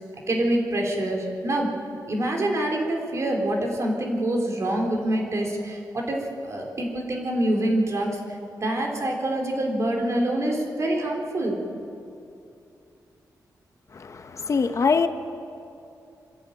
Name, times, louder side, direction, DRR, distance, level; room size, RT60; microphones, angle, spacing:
voice 1, 0.3-1.7 2.1-8.2 8.5-11.6, right 1 dB, 45° right, 0 dB, 3.9 m, -26 dB
voice 2, 13.9-15.1, left 5 dB, 45° left, 8 dB, 0.9 m, -23 dB
26.5 x 11.0 x 9.1 m, 2.6 s
wide cardioid pair, 110°, 7 cm